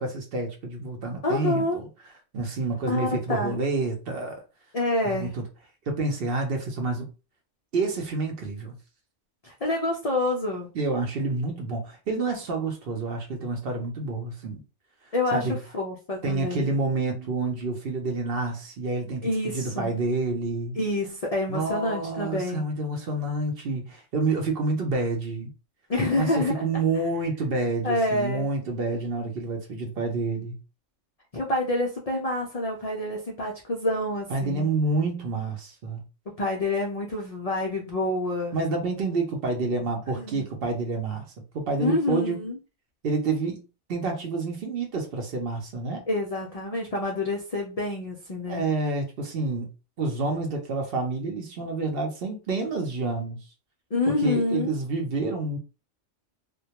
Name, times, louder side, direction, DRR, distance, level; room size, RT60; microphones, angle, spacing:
voice 1, 0.0-1.9 2.3-4.4 5.0-5.5 5.9-7.1 7.7-8.8 10.7-14.6 15.3-15.6 16.2-20.8 21.5-25.5 26.1-30.6 34.3-36.0 38.5-41.3 41.5-42.4 43.0-43.6 43.9-46.1 48.5-49.7 50.0-53.4 54.1-55.6, right 3 dB, 60° right, 0.8 m, -28 dB
voice 2, 1.2-1.8 2.9-3.5 4.7-5.3 9.4-10.7 15.1-16.7 19.2-20.0 20.8-22.6 25.9-26.6 27.8-28.5 31.3-34.7 36.3-38.5 40.2-40.5 41.8-42.6 46.1-48.6 53.9-54.7, left 2 dB, 65° left, 0.3 m, -27 dB
2.2 x 2.2 x 2.8 m
omnidirectional pair, 1.3 m